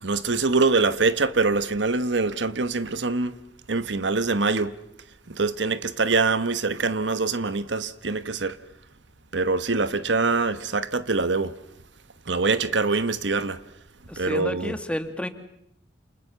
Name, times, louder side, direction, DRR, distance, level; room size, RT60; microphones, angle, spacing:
voice 1, 0.0-3.4 3.7-4.8 5.3-8.6 9.3-11.5 12.3-13.6 14.2-14.8, right 3 dB, 70° right, 1.2 m, -24 dB
voice 2, 14.1-15.3, equal, 5° left, 2.0 m, -30 dB
28.5 x 28.5 x 7.0 m
head